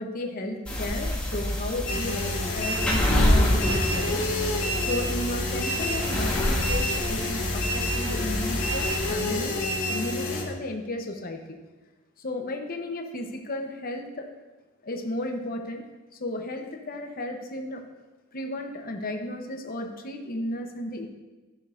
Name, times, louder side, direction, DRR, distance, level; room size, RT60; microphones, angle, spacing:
voice 1, 0.0-4.2 4.9-9.6 9.9-11.6 12.2-14.3 14.8-15.8 16.2-17.8 18.3-21.1, left 1 dB, 45° left, 3 dB, 0.9 m, -33 dB
sound 1, 0.7-9.1, equal, 5° left, 1.4 m, -27 dB
sound 2, 1.9-10.4, left 1 dB, 75° left, 2.2 m, -29 dB
13.0 x 6.3 x 2.6 m, 1.2 s
head